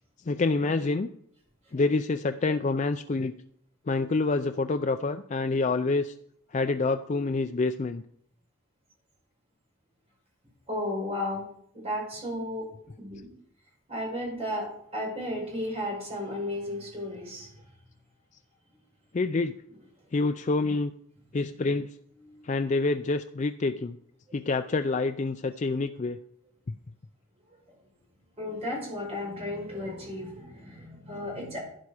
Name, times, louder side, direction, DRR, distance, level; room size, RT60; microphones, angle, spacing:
voice 1, 0.2-1.1 1.7-3.3 3.9-6.1 6.5-8.0 19.1-19.5 20.1-20.9 21.3-22.0 22.4-24.0 24.3-26.2, left 3 dB, 35° left, 8 dB, 0.4 m, -27 dB
voice 2, 10.7-11.5 11.7-12.7 13.0-13.3 13.9-17.6 22.2-22.5 27.5-27.8 28.4-31.6, left 1 dB, 30° right, -1 dB, 5.1 m, -34 dB
11.5 x 10.5 x 4.9 m, 0.68 s
head